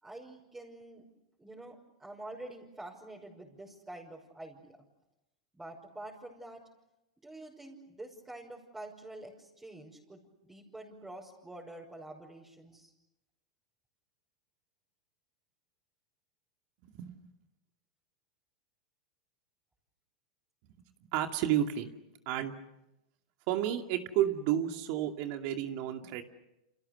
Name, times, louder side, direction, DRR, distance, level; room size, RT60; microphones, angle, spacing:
voice 1, 0.0-1.0 1.4-4.8 5.5-6.6 7.2-12.9, right 1 dB, 10° right, -1 dB, 5.7 m, -47 dB
voice 2, 16.8-17.1 21.1-21.9 22.3-22.6 23.5-26.2, right 11 dB, 50° right, 5 dB, 2.4 m, -31 dB
30.0 x 28.0 x 6.8 m, 0.91 s
hypercardioid pair, 105°, 3 cm